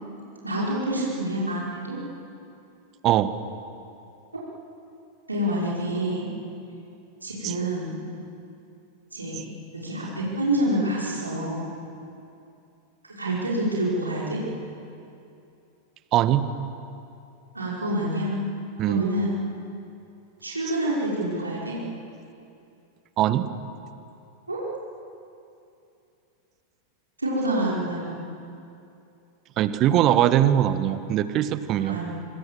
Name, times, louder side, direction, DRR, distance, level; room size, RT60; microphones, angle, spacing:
voice 1, 0.4-2.0 4.3-4.4 5.3-6.3 7.2-8.0 9.1-9.4 9.7-11.7 13.0-14.4 17.5-18.3 18.9-19.3 20.4-21.8 24.5-24.6 27.2-28.1 31.8-32.1, right 1 dB, 80° right, -5 dB, 5.2 m, -27 dB
voice 2, 16.1-16.5 18.8-19.0 23.2-23.5 29.6-32.0, right 12 dB, 35° right, 13 dB, 1.3 m, -21 dB
26.0 x 25.5 x 7.5 m, 2.7 s
figure-of-eight pair, 90°, 0 cm